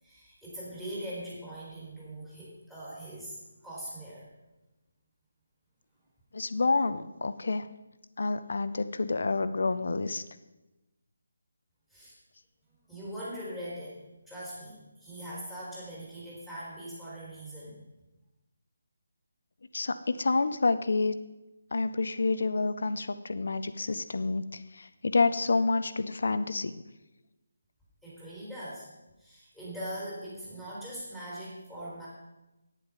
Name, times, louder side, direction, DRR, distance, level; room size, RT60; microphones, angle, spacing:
voice 1, 0.0-4.3 11.9-12.1 12.9-14.0 14.3-17.8 28.0-28.9 29.2-32.1, right 1 dB, 5° right, -9 dB, 4.1 m, -41 dB
voice 2, 6.3-7.7 8.2-10.2 19.7-21.2 21.7-24.4 24.8-26.7, left 3 dB, 55° left, 12 dB, 0.7 m, -28 dB
11.0 x 9.7 x 5.3 m, 1.0 s
figure-of-eight pair, 150°, 0 cm